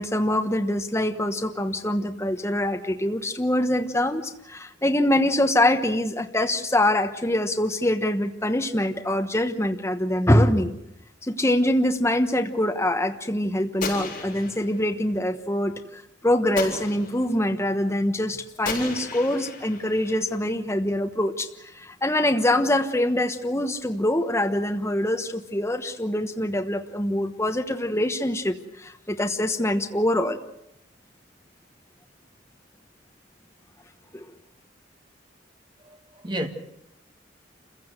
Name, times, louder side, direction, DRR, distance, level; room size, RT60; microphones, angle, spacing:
voice 1, 0.0-10.8 11.3-21.5 21.7-30.4 34.1-34.2, left 1 dB, 15° left, 1.2 m, -24 dB
Gunshot gunfire, 13.8-14.9 16.6-17.4 18.7-20.4, left 3 dB, 45° left, 6.7 m, -34 dB
voice 2, 35.8-36.5, equal, 25° right, 2.0 m, -31 dB
27.5 x 16.0 x 8.1 m
head